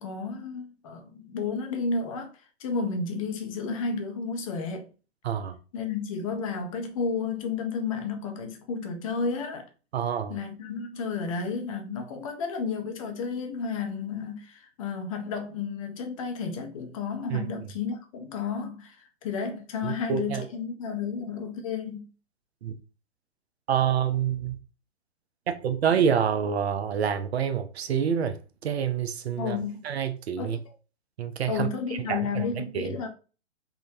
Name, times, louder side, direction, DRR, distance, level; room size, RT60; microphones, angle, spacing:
voice 1, 0.0-2.3 2.6-4.9 5.7-9.7 10.3-22.1 29.4-29.9 30.4-30.6 31.5-33.1, left 5 dB, 30° left, 0.5 m, -32 dB
voice 2, 5.2-5.6 9.9-10.4 17.3-17.5 19.8-20.4 22.6-22.7 23.7-24.6 25.5-28.4 28.6-29.6 29.8-30.6 31.2-31.7 32.1-32.4 32.7-32.9, right 8 dB, 60° right, 0.5 m, -27 dB
3.5 x 2.1 x 2.6 m
figure-of-eight pair, 125°, 35 cm